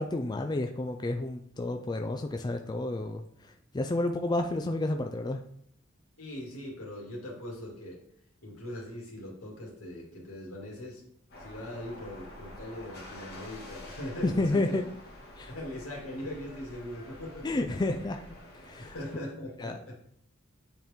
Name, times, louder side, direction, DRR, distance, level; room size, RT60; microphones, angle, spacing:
voice 1, 0.0-5.4 14.2-14.8 15.4-15.5 17.4-18.2 18.5-18.9 19.6-19.9, left 2 dB, 20° left, 5 dB, 0.4 m, -31 dB
voice 2, 6.2-8.0 8.4-11.0 11.3-14.8 15.5-17.5 18.8-19.9, left 1 dB, 85° left, -2 dB, 2.4 m, -40 dB
sound 1, 11.3-19.2, left 1 dB, 50° left, 1.9 m, -48 dB
7.8 x 4.5 x 3.5 m, 0.67 s
head